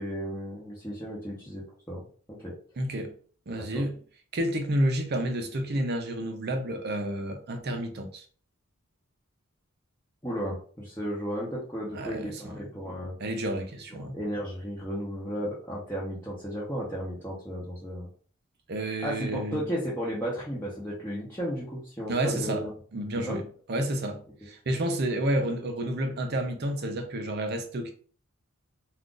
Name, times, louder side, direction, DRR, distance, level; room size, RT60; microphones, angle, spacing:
voice 1, 0.0-2.5 10.2-13.1 14.1-18.1 19.0-22.7 23.1-23.4, equal, 10° left, 0.8 m, -34 dB
voice 2, 2.8-3.2 3.5-4.0 4.3-8.2 11.9-12.6 13.2-14.1 18.7-19.6 22.1-27.9, right 1 dB, 50° right, 0.5 m, -30 dB
2.4 x 2.4 x 3.7 m
head